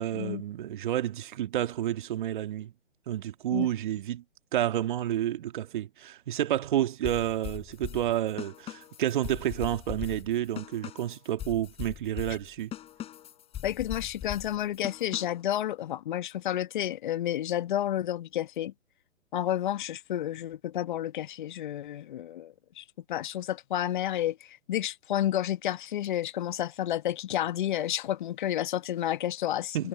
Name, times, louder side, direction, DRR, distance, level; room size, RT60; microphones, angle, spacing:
voice 1, 0.0-2.7 3.1-4.2 4.5-12.7 29.7-29.9, right 12 dB, 40° right, 2.3 m, -30 dB
sound 1, 7.0-15.5, left 11 dB, 15° left, 6.1 m, -41 dB
voice 2, 13.6-18.7 19.3-29.9, left 12 dB, 40° left, 1.4 m, -31 dB
figure-of-eight pair, 135°, 38 cm